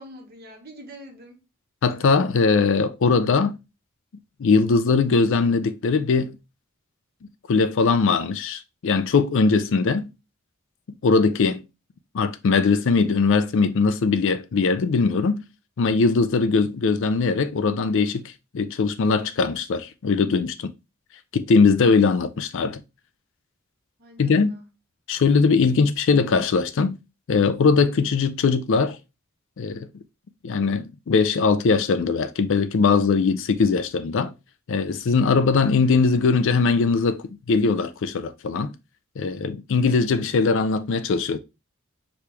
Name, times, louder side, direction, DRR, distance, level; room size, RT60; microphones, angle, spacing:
voice 1, 0.0-1.4 24.0-24.7, equal, 45° right, 1.3 m, -44 dB
voice 2, 1.8-3.6 4.4-6.4 7.5-10.1 11.0-11.6 12.1-15.4 15.8-20.7 21.3-22.8 24.2-24.6 25.1-27.0 27.3-29.0 29.6-29.9 30.4-34.3 34.7-38.7 39.2-41.4, left 4 dB, 60° left, 0.4 m, -20 dB
5.0 x 3.1 x 3.3 m
head